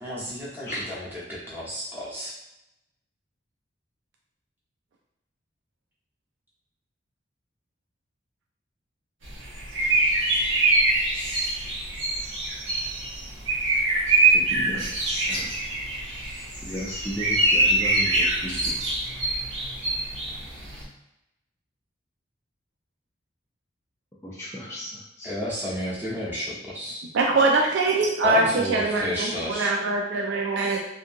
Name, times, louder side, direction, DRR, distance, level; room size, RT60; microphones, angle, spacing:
voice 1, 0.0-2.3 25.2-27.0 28.2-29.7, left 1 dB, 10° right, -7 dB, 0.8 m, -31 dB
sound 1, 9.2-20.8, right 2 dB, 90° right, 0.9 m, -24 dB
voice 2, 14.3-15.5 16.6-18.8 24.2-25.3, equal, 15° left, -8 dB, 0.3 m, -35 dB
voice 3, 27.1-30.8, right 3 dB, 70° right, 0 dB, 0.3 m, -23 dB
2.6 x 2.6 x 2.5 m, 0.89 s
head